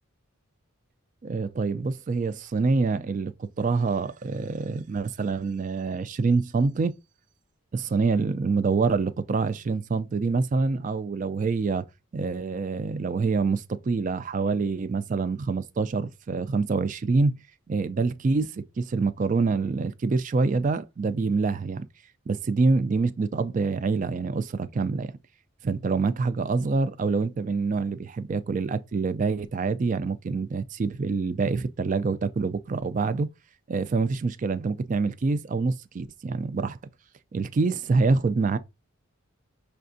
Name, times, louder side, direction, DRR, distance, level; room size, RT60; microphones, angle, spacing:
voice 1, 1.2-6.9 7.7-11.8 12.1-17.3 17.7-21.8 22.3-25.1 25.6-33.3 33.7-36.8 37.3-38.6, right 4 dB, 35° right, 0.3 m, -26 dB
5.7 x 3.4 x 2.6 m
head